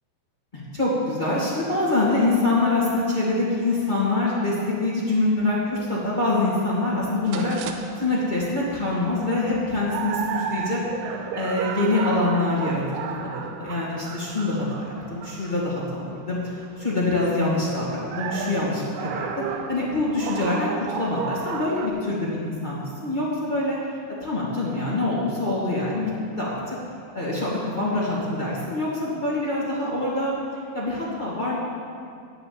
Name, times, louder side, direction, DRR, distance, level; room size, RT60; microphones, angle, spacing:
voice 1, 0.5-7.6 8.0-10.8 11.3-12.8 13.1-23.8 24.2-26.8 27.1-30.3 30.7-31.5, left 2 dB, 30° left, -7 dB, 0.9 m, -25 dB
sound 1, 7.3-21.9, right 6 dB, 85° right, 3.1 m, -34 dB
10.0 x 8.8 x 8.7 m, 2.3 s
omnidirectional pair, 5.5 m